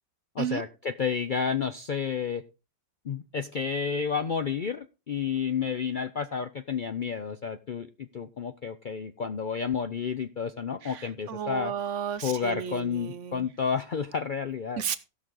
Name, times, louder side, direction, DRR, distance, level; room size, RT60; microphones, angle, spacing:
voice 1, 0.3-2.4 3.0-11.7 12.2-14.8, left 6 dB, 55° left, 9 dB, 0.5 m, -31 dB
voice 2, 11.3-13.5 14.8-15.0, right 9 dB, 60° right, 12 dB, 1.0 m, -32 dB
16.5 x 6.1 x 3.8 m, 0.29 s
omnidirectional pair, 1.5 m